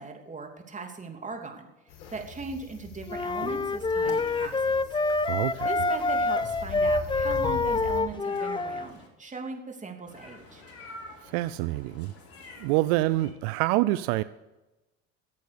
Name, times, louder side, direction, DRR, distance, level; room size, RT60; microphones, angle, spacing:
voice 1, 0.0-1.7 2.1-4.7 5.6-10.6, right 4 dB, 25° right, 3 dB, 3.0 m, -39 dB
sound 1, 1.9-8.0, left 4 dB, 75° left, 2.8 m, -41 dB
sound 2, 3.1-8.9, left 3 dB, 15° left, 0.6 m, -27 dB
Meow, 4.0-4.8 5.8-7.1 8.1-9.1 10.1-13.3, left 2 dB, 45° left, 4.0 m, -48 dB
voice 2, 5.3-5.7 11.3-12.1 12.6-14.2, right 18 dB, 75° right, 15 dB, 0.5 m, -26 dB
15.0 x 8.4 x 6.8 m, 1.0 s
hypercardioid pair, 75°, 32 cm